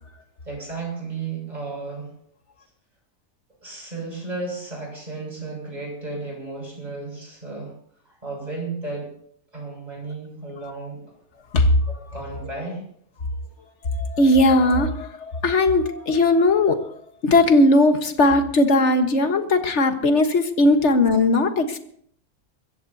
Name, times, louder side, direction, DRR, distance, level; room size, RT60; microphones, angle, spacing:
voice 1, 0.5-2.1 3.6-7.7 8.1-9.1 9.5-11.0 11.9-12.8, right 3 dB, 25° right, -1 dB, 6.9 m, -33 dB
voice 2, 13.9-16.9 17.2-21.8, left 2 dB, 50° left, 7 dB, 1.6 m, -18 dB
25.0 x 15.0 x 2.8 m, 0.64 s
omnidirectional pair, 1.6 m